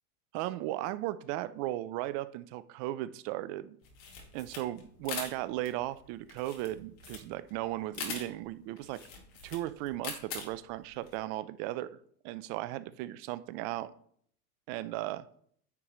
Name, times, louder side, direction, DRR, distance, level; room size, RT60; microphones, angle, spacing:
voice 1, 0.3-3.8 4.3-9.0 9.4-12.0 12.2-13.9 14.7-15.3, right 15 dB, 40° right, 15 dB, 0.4 m, -36 dB
sound 1, 3.8-11.2, left 5 dB, 60° left, 2.2 m, -43 dB
9.6 x 4.7 x 3.0 m, 0.62 s
hypercardioid pair, 115°, 47 cm